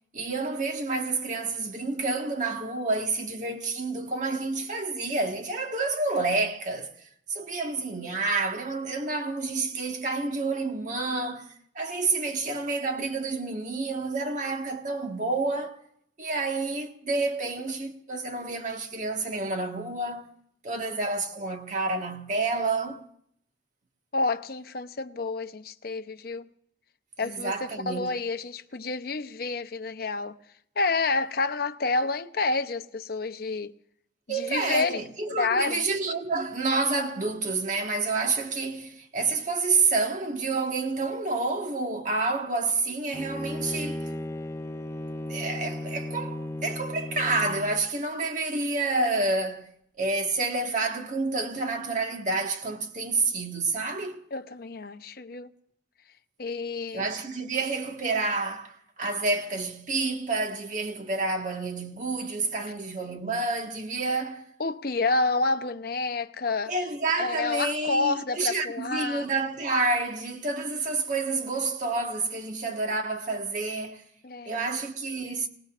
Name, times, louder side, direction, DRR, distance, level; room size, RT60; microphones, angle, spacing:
voice 1, 0.1-6.9 7.3-15.8 16.2-20.3 20.6-23.0 27.2-28.2 34.3-44.0 45.3-49.7 50.0-54.2 56.9-64.4 66.7-74.0 74.4-75.5, right 3 dB, 40° right, 1.6 m, -29 dB
voice 2, 24.1-26.5 27.2-30.4 30.8-33.7 34.3-35.0 35.4-35.8 54.3-55.5 56.4-57.1 64.6-66.7 67.2-69.3 74.2-74.7, left 3 dB, 50° left, 0.7 m, -29 dB
Bowed string instrument, 43.1-47.9, left 1 dB, 15° left, 0.5 m, -35 dB
26.5 x 19.0 x 2.5 m
head